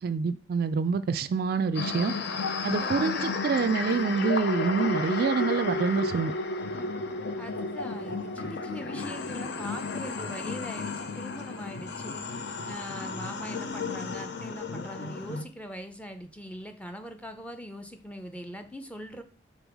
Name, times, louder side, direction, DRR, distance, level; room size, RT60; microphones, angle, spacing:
voice 1, 0.0-2.1 2.6-6.3, right 5 dB, 50° right, 0.3 m, -27 dB
sound 1, 1.7-15.4, left 3 dB, 60° left, 0.6 m, -33 dB
voice 2, 2.0-3.4 7.4-12.2 12.7-19.2, equal, 5° left, 0.5 m, -41 dB
5.4 x 3.8 x 4.7 m
head